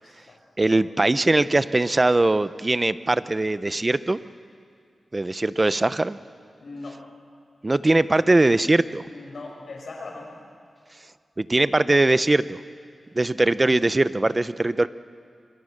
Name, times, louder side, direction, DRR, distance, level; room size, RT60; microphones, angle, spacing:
voice 1, 0.0-0.4 0.7-0.9 6.6-7.0 9.0-10.5, left 3 dB, 75° left, 0 dB, 5.7 m, -40 dB
voice 2, 0.6-4.2 5.1-6.2 7.6-9.0 11.4-12.6 13.1-14.9, right 2 dB, 30° right, 15 dB, 0.6 m, -21 dB
25.5 x 24.5 x 6.6 m, 2.3 s
wide cardioid pair, 70°, 0 cm